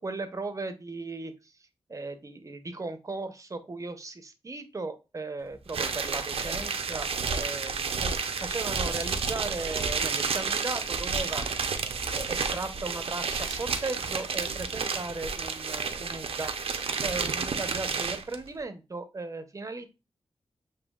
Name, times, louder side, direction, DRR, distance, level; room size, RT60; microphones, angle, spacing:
voice 1, 0.0-1.5 1.9-8.1 8.4-11.4 12.1-16.5 17.0-19.9, right 3 dB, 35° right, 9 dB, 0.7 m, -37 dB
sound 1, 5.7-18.4, right 5 dB, 75° right, 0.7 m, -31 dB
7.0 x 2.9 x 2.3 m, 0.27 s
wide cardioid pair, 115°, 10 cm